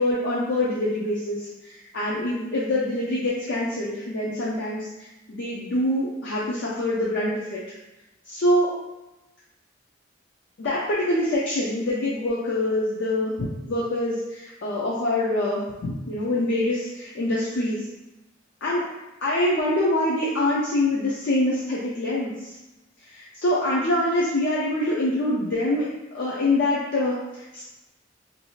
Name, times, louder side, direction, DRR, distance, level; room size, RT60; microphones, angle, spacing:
voice 1, 0.0-7.8 8.3-8.7 10.6-17.8 18.6-18.8 19.2-22.5 23.1-25.9 26.1-27.7, left 1 dB, 60° left, -6 dB, 0.5 m, -25 dB
2.6 x 2.4 x 3.0 m, 1.0 s
head